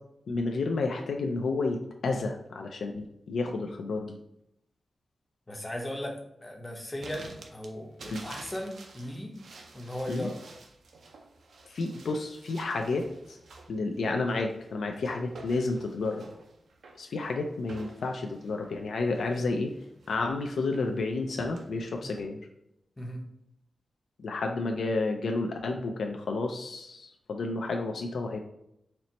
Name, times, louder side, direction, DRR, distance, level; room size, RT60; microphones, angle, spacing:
voice 1, 0.3-4.2 8.1-8.2 10.1-10.3 11.7-13.4 13.7-16.2 17.0-19.7 20.1-22.4 24.2-28.4, left 3 dB, 85° left, 3 dB, 0.4 m, -31 dB
voice 2, 5.5-9.3 9.7-10.4 22.0-22.1 23.0-23.2, left 1 dB, 20° left, 1 dB, 0.7 m, -37 dB
sound 1, 7.0-22.2, right 3 dB, 90° right, 0.5 m, -50 dB
4.3 x 2.1 x 3.9 m, 0.78 s
wide cardioid pair, 145°, 0 cm